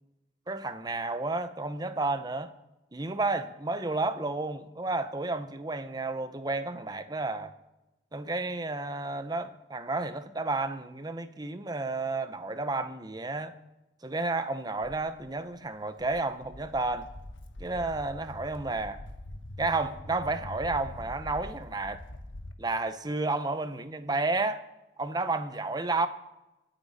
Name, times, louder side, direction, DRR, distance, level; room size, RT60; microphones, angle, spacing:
voice 1, 0.5-2.5 2.9-7.5 8.1-13.5 14.0-17.1 17.6-19.0 19.6-22.0 22.6-24.6 25.0-26.1, right 3 dB, 20° right, 0.7 m, -31 dB
Walk footsteps, 14.8-22.5, left 1 dB, 85° left, 1.2 m, -44 dB
23.5 x 8.3 x 4.2 m
head